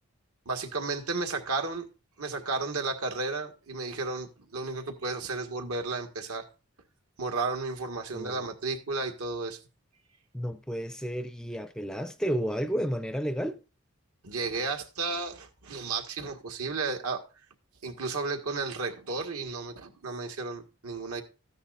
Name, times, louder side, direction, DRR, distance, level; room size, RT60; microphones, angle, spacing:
voice 1, 0.4-1.9 2.2-6.4 7.2-9.6 14.2-17.2 17.8-21.2, right 3 dB, 85° right, 1.6 m, -33 dB
voice 2, 8.1-8.4 10.3-13.6, equal, 5° left, 0.4 m, -32 dB
13.5 x 10.0 x 2.5 m
head